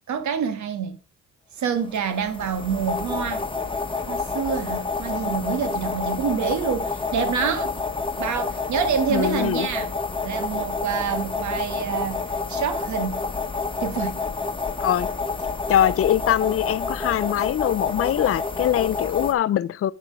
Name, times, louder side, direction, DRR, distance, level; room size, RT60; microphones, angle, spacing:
voice 1, 0.1-1.0 1.6-3.4 4.1-7.8 8.2-9.9 10.2-12.2 12.5-13.2 13.8-14.2, right 7 dB, 70° right, 1.6 m, -27 dB
sound 1, 1.9-19.3, left 4 dB, 15° left, 1.2 m, -29 dB
voice 2, 9.1-9.7 14.8-15.1 15.7-19.9, left 11 dB, 50° left, 0.5 m, -22 dB
9.8 x 4.4 x 5.2 m
cardioid pair, 90°, 30 cm